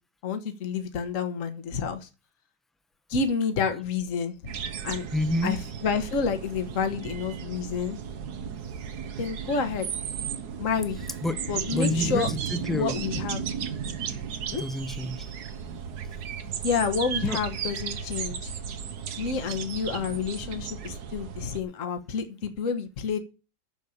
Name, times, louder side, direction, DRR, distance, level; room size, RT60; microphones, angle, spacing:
voice 1, 0.2-2.1 3.1-4.4 4.8-5.1 5.4-8.0 9.2-9.9 10.6-11.0 11.5-12.3 12.7-13.4 14.5-14.6 16.6-18.5 19.2-23.2, left 5 dB, 50° left, 1.6 m, -29 dB
sound 1, 4.5-21.6, right 7 dB, 70° right, 1.5 m, -35 dB
voice 2, 5.1-5.6 10.9-11.4 11.7-13.0 14.5-15.3 17.2-17.4, left 1 dB, ahead, 0.6 m, -29 dB
10.5 x 6.6 x 7.1 m
omnidirectional pair, 1.8 m